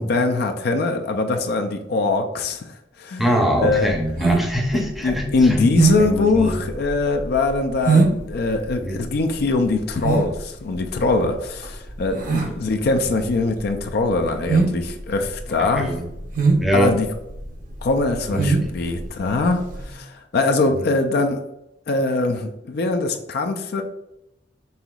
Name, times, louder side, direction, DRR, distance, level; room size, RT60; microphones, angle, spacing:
voice 1, 0.0-2.6 3.0-3.3 3.6-4.0 4.7-15.9 16.7-17.1 17.8-21.4 21.9-23.8, left 3 dB, 60° left, 5 dB, 0.4 m, -22 dB
voice 2, 3.2-5.6 6.0-6.6 8.8-8.9 12.4-12.5 15.7-16.0 16.6-16.9 18.3-18.6 20.7-20.9, equal, ahead, 0 dB, 0.6 m, -23 dB
sound 1, 3.6-19.9, right 4 dB, 50° right, 0.7 m, -23 dB
5.5 x 2.9 x 2.3 m, 0.87 s
head